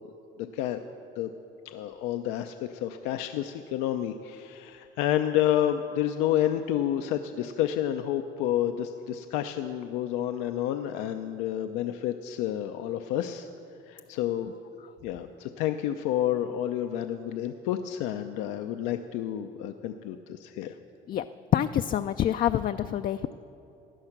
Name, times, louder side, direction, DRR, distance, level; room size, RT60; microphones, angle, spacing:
voice 1, 1.6-13.5 13.8-14.5 15.0-20.7, left 11 dB, 85° left, 7 dB, 0.6 m, -29 dB
voice 2, 21.5-23.4, left 11 dB, 45° left, 8 dB, 0.4 m, -26 dB
16.5 x 10.5 x 5.9 m, 2.8 s
supercardioid pair, 90°, 21 cm